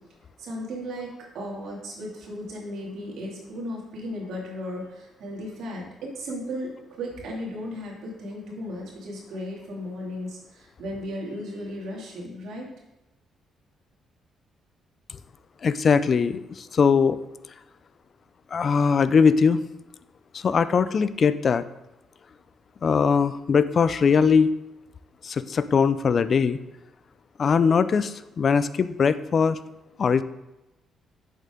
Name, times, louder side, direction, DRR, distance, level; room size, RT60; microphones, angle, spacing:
voice 1, 0.4-12.7, equal, 75° right, -2 dB, 2.5 m, -35 dB
voice 2, 15.6-17.2 18.5-19.6 20.4-21.6 22.8-24.5 25.2-26.6 27.4-29.6 30.0-30.2, left 6 dB, 45° left, 14 dB, 0.4 m, -21 dB
8.3 x 7.3 x 3.7 m, 0.99 s
cardioid pair, 90°, 0 cm